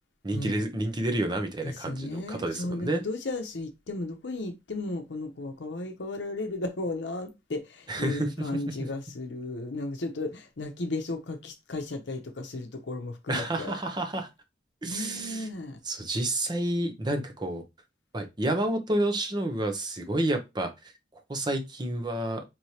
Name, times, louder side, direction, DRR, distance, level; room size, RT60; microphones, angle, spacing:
voice 1, 0.2-3.0 7.9-8.9 13.3-14.3 14.8-15.5 15.8-17.6 18.1-20.9 21.3-22.4, right 1 dB, 25° right, 0.7 m, -30 dB
voice 2, 1.6-13.8 14.8-15.8, left 2 dB, 80° left, 0.7 m, -35 dB
4.6 x 3.1 x 2.8 m
head